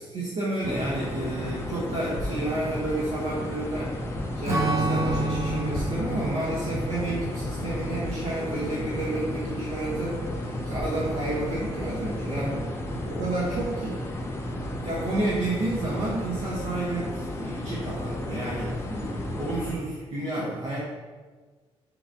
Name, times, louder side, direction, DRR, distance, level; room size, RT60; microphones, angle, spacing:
voice 1, 0.0-12.7 13.1-14.0 14.8-20.8, right 2 dB, 65° right, -6 dB, 1.0 m, -31 dB
sound 1, 0.6-19.8, left 1 dB, 25° left, 0.4 m, -33 dB
Strum, 4.5-9.1, right 2 dB, 25° right, 0.7 m, -30 dB
4.7 x 3.9 x 2.7 m, 1.4 s
cardioid pair, 175°, 11 cm